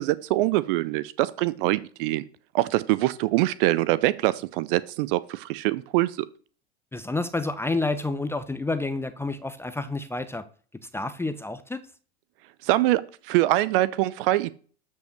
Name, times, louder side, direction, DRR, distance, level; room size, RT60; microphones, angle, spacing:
voice 1, 0.0-2.2 2.5-6.3 12.6-14.5, right 17 dB, 55° right, 19 dB, 0.7 m, -24 dB
voice 2, 6.9-10.4 10.8-11.8, left 2 dB, 5° left, 11 dB, 0.7 m, -29 dB
13.0 x 5.5 x 6.5 m, 0.43 s
hypercardioid pair, 85°, 33 cm